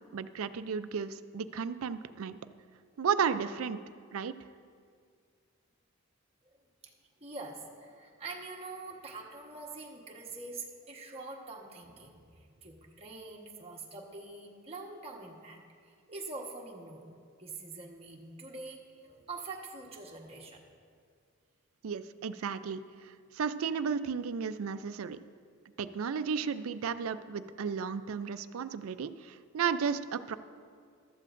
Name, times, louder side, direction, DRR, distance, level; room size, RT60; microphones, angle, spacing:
voice 1, 0.0-2.4 3.0-3.8 4.1-4.3 21.8-25.2 25.8-30.3, right 6 dB, 75° right, 13 dB, 0.4 m, -34 dB
voice 2, 7.2-12.2 12.6-15.6 16.1-17.1 17.4-20.6, right 3 dB, 30° right, 0 dB, 1.2 m, -44 dB
15.0 x 12.5 x 2.5 m, 2.2 s
head